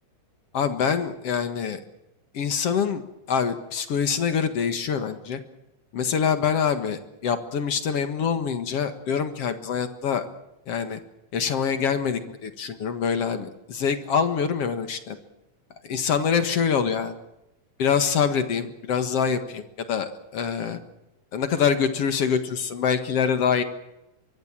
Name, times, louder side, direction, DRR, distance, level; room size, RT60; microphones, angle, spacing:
voice 1, 0.5-1.8 2.3-3.0 3.3-5.4 5.9-10.3 10.7-11.0 11.3-15.2 15.8-17.1 17.8-20.8 21.3-23.6, left 7 dB, 55° left, 9 dB, 2.5 m, -25 dB
24.5 x 23.0 x 7.5 m, 0.91 s
omnidirectional pair, 3.4 m